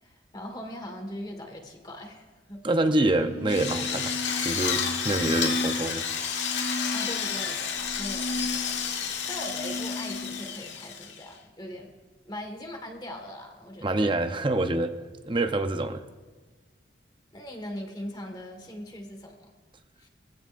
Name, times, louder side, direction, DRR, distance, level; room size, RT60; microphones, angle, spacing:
voice 1, 0.0-2.6 6.9-8.8 9.3-12.0 12.3-14.1 17.3-19.4 20.0-20.1, left 1 dB, 25° left, 3 dB, 1.7 m, -40 dB
voice 2, 2.6-6.0 13.8-14.9 15.2-16.0, right 2 dB, 25° right, 8 dB, 0.8 m, -26 dB
sound 1, 2.9-10.5, left 1 dB, 60° left, 5.1 m, -36 dB
Drill, 3.5-11.3, left 7 dB, 90° left, 1.6 m, -31 dB
23.5 x 16.0 x 2.6 m, 1.3 s
head